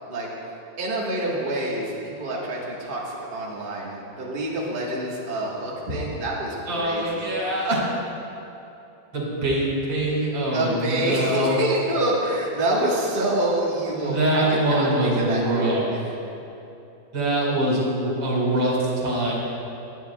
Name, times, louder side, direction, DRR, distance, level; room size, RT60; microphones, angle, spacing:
voice 1, 0.8-7.3 10.5-16.1, right 1 dB, 30° right, -5 dB, 1.6 m, -27 dB
voice 2, 6.7-7.8 9.1-11.6 14.0-15.8 17.1-19.3, right 1 dB, 75° right, -4 dB, 3.0 m, -23 dB
18.5 x 10.0 x 2.3 m, 2.9 s
omnidirectional pair, 2.1 m